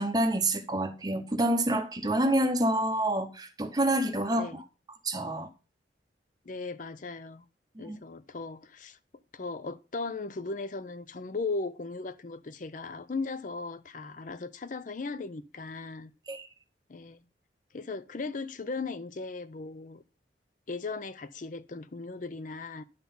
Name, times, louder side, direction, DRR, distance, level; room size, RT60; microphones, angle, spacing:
voice 1, 0.0-4.6 5.0-5.5 7.8-8.0 16.3-16.5, right 1 dB, 20° right, 0.7 m, -27 dB
voice 2, 6.5-7.4 7.8-9.0 9.3-16.1 16.9-17.2 17.7-20.0 20.7-22.8, left 3 dB, 45° left, 0.5 m, -37 dB
10.5 x 4.0 x 5.4 m
head